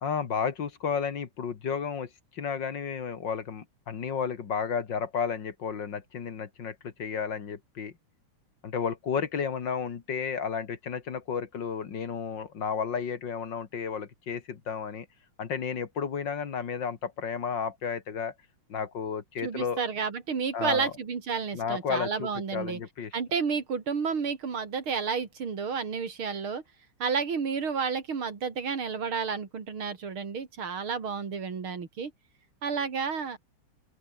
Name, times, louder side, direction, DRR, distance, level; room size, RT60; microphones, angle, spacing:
voice 1, 0.0-7.9 8.6-15.1 15.4-18.3 18.7-19.8 20.5-20.9 21.5-23.1, left 6 dB, 60° left, 2.4 m, -32 dB
voice 2, 19.4-22.8 23.1-26.6 27.0-32.1 32.6-33.4, right 5 dB, 75° right, 3.6 m, -31 dB
open air
omnidirectional pair, 2.3 m